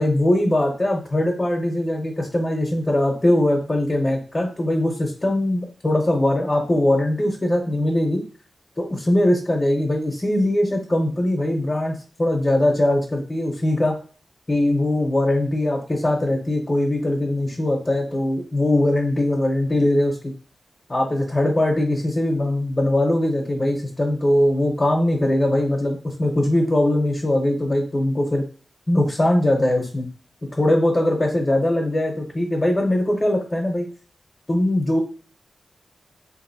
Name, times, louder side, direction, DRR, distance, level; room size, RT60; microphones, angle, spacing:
voice 1, 0.0-8.2 8.8-14.0 14.5-20.3 20.9-28.4 28.9-30.1 30.5-33.9 34.5-35.0, left 1 dB, 25° left, 0 dB, 0.8 m, -21 dB
3.8 x 2.6 x 2.6 m, 0.39 s
wide cardioid pair, 145°, 0 cm